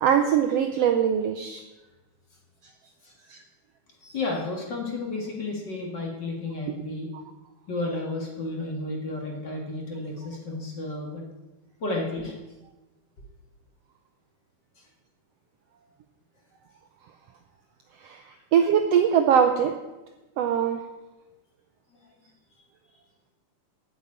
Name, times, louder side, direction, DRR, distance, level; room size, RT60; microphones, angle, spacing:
voice 1, 0.0-1.6 3.3-3.4 18.0-18.2 18.5-19.7 20.4-20.8, right 8 dB, 75° right, 6 dB, 1.5 m, -21 dB
voice 2, 4.0-7.1 7.7-11.2 11.8-12.3, left 2 dB, 40° left, 0 dB, 2.0 m, -32 dB
8.8 x 7.1 x 8.7 m, 1.1 s
omnidirectional pair, 3.5 m